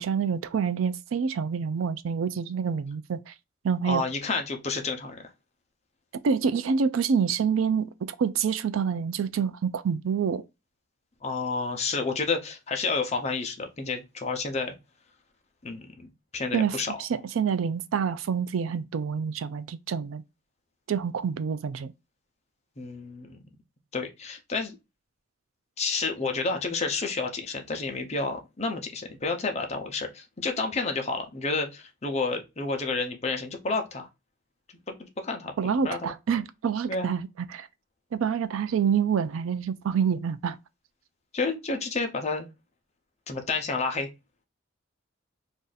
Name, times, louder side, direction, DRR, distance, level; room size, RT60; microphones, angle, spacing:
voice 1, 0.0-3.3 3.6-4.0 6.2-10.4 16.5-20.2 20.9-21.9 35.6-37.7 38.1-40.6, right 6 dB, 85° right, 0.4 m, -27 dB
voice 2, 3.8-5.2 11.2-14.7 15.6-16.1 16.3-16.9 22.8-23.4 23.9-24.8 25.8-34.1 34.9-36.1 36.9-37.1 41.3-42.5 43.3-44.1, left 3 dB, 35° left, 0.6 m, -30 dB
2.6 x 2.5 x 3.8 m
head